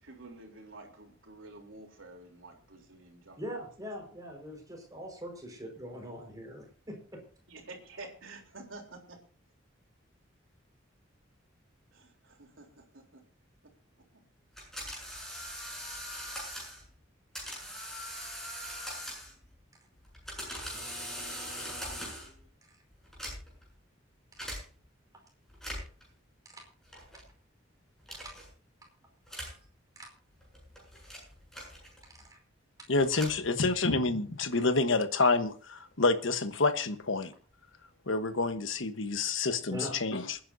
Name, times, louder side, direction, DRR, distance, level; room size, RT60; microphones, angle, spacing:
voice 1, 0.0-3.5 7.5-9.2 11.9-13.2, right 2 dB, 90° right, 1 dB, 3.5 m, -49 dB
voice 2, 3.4-7.2 24.4-24.5 26.5-26.6 28.2-28.3 29.9-30.1 32.3-32.4 39.7-40.0, equal, 20° right, 1 dB, 5.0 m, -42 dB
sound 1, 14.6-16.8 17.3-19.5 20.0-22.4 23.0-23.7 24.4-24.6 25.5-26.0 26.9-27.2 28.1-28.5 29.3-29.6 30.4-32.2 32.9-34.0, equal, ahead, 7.9 m, -41 dB
voice 3, 32.9-37.3 38.1-40.4, left 3 dB, 75° left, 9 dB, 1.2 m, -28 dB
27.5 x 10.0 x 2.7 m, 0.40 s
head